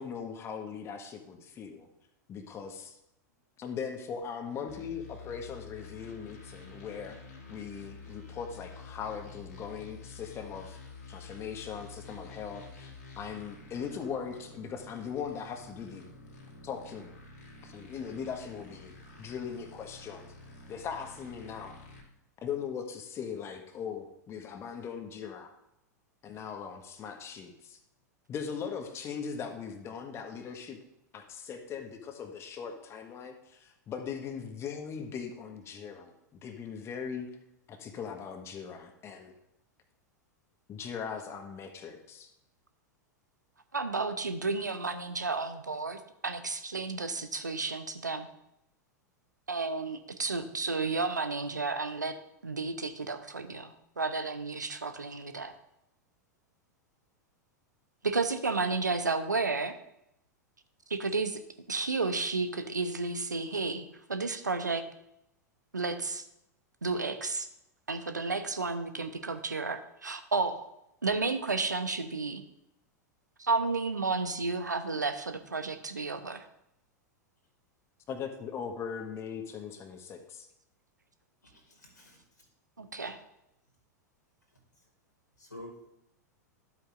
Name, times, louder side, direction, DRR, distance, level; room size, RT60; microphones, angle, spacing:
voice 1, 0.0-1.9 2.3-3.0 3.6-7.2 7.5-10.8 11.1-16.1 16.6-17.1 17.6-20.3 20.7-21.7 22.4-25.5 26.2-27.8 28.3-30.8 31.1-36.1 36.4-37.3 37.7-39.3 40.7-42.3 78.1-80.5, left 7 dB, 30° left, 5 dB, 1.3 m, -39 dB
sound 1, 4.7-22.0, left 4 dB, 65° left, 2.3 m, -49 dB
voice 2, 43.7-48.3 49.5-52.2 52.4-55.5 58.0-59.7 60.9-61.4 61.7-64.8 65.7-66.2 66.8-67.5 67.9-70.7 71.0-72.4 73.4-76.4 82.8-83.2, right 3 dB, 85° right, 9 dB, 0.8 m, -32 dB
voice 3, 81.4-82.5 85.4-85.9, left 1 dB, 90° left, 0 dB, 2.4 m, -49 dB
12.0 x 8.2 x 2.5 m, 0.82 s
figure-of-eight pair, 95°, 9 cm